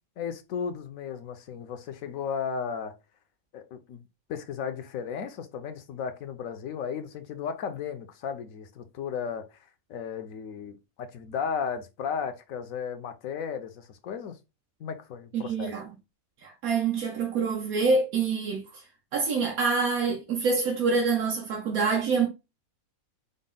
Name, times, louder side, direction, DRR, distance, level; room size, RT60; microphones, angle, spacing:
voice 1, 0.2-2.9 3.5-4.0 4.3-9.4 9.9-14.3 14.8-15.7, left 7 dB, 75° left, 1.1 m, -34 dB
voice 2, 15.3-15.9 16.4-18.8 19.1-22.3, right 4 dB, 85° right, 1.4 m, -26 dB
5.2 x 2.1 x 3.7 m
omnidirectional pair, 1.5 m